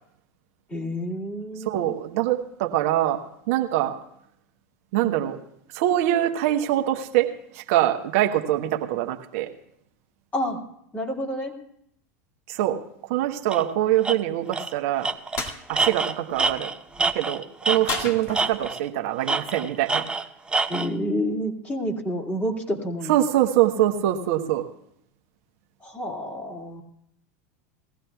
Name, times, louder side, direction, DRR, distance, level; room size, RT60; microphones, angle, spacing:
voice 1, 0.7-2.0 10.3-10.6 10.9-11.5 20.7-23.2 25.8-26.8, equal, 20° left, 0 dB, 2.4 m, -29 dB
voice 2, 1.7-4.0 4.9-5.4 5.7-9.5 12.5-12.8 13.1-15.1 15.7-16.7 17.1-20.0 23.1-24.6, right 13 dB, 65° right, 4 dB, 1.0 m, -24 dB
Tools, 13.5-13.6 14.0-14.2 14.5-14.7 15.0-18.1 18.3-18.9 19.3-20.9, right 3 dB, 10° right, 0.7 m, -26 dB
sound 1, 15.4-15.6 17.9-18.8, left 4 dB, 40° left, 1.8 m, -31 dB
20.0 x 15.5 x 2.3 m, 0.75 s
hypercardioid pair, 95°, 8 cm